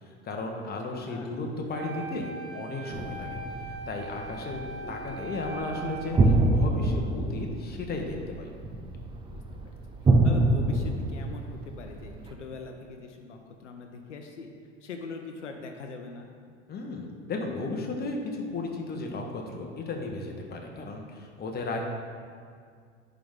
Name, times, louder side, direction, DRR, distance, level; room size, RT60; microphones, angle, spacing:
voice 1, 0.2-3.4 3.9-4.6 4.9-8.5 16.7-21.8, left 3 dB, 25° left, 2 dB, 1.1 m, -35 dB
voice 2, 0.9-1.3 9.3-9.4 10.2-14.5 14.8-16.3, left 4 dB, 80° left, 3 dB, 0.7 m, -42 dB
Wind instrument woodwind instrument, 1.7-6.8, right 3 dB, 65° right, 0.7 m, -40 dB
sound 1, 2.9-12.3, right 2 dB, 15° right, 0.6 m, -27 dB
10.0 x 3.8 x 3.6 m, 2.1 s
hypercardioid pair, 80°, 35 cm